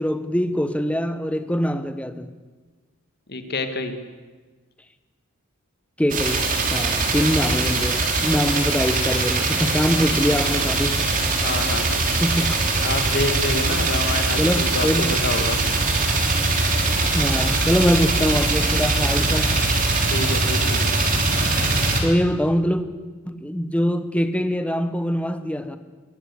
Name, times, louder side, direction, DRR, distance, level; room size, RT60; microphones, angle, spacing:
voice 1, 0.0-2.3 6.0-11.1 12.2-12.6 14.4-15.2 17.1-19.6 22.0-22.9 23.3-25.8, equal, 5° left, 1.0 m, -23 dB
voice 2, 3.3-4.0 11.4-12.0 12.8-15.6 20.1-20.8, left 2 dB, 50° left, 1.9 m, -27 dB
sound 1, 6.1-22.0, right 3 dB, 40° right, 3.2 m, -22 dB
21.5 x 16.5 x 8.2 m
head